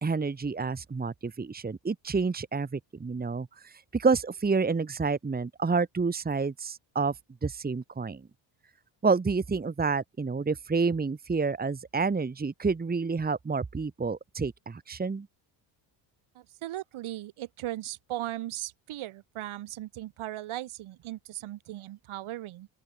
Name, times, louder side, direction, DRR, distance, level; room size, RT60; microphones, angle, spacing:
voice 1, 0.0-7.2 7.4-8.2 9.0-15.3, right 4 dB, 20° right, 1.6 m, -29 dB
voice 2, 16.3-22.7, right 14 dB, 75° right, 6.8 m, -38 dB
open air
cardioid pair, 110°, 49 cm